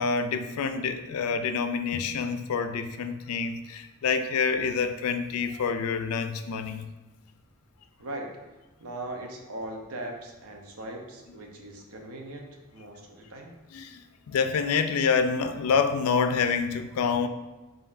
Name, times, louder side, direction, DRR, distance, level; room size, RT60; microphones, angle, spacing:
voice 1, 0.0-6.9 13.7-14.0 14.3-17.3, left 5 dB, 85° left, 8 dB, 0.3 m, -27 dB
voice 2, 8.8-13.6, right 1 dB, 90° right, 1 dB, 0.7 m, -39 dB
5.0 x 2.6 x 2.5 m, 1.2 s
head